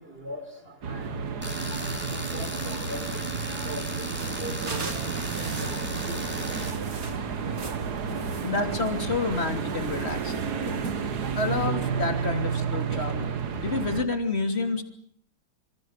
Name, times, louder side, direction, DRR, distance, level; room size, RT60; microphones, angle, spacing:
sound 1, 0.8-14.1, right 6 dB, 85° right, 2.0 m, -31 dB
Tools, 1.4-6.7, equal, 5° right, 5.1 m, -37 dB
voice 1, 2.3-3.0 3.6-4.0 4.4-5.1 5.6-5.8 6.1-6.2, left 1 dB, 35° right, 9 dB, 4.3 m, -38 dB
sound 2, 4.1-11.7, right 3 dB, 65° right, 2.8 m, -38 dB
voice 2, 8.4-10.5 11.4-14.8, left 3 dB, 40° left, 7 dB, 3.3 m, -29 dB
27.5 x 27.0 x 6.7 m, 0.64 s
omnidirectional pair, 1.7 m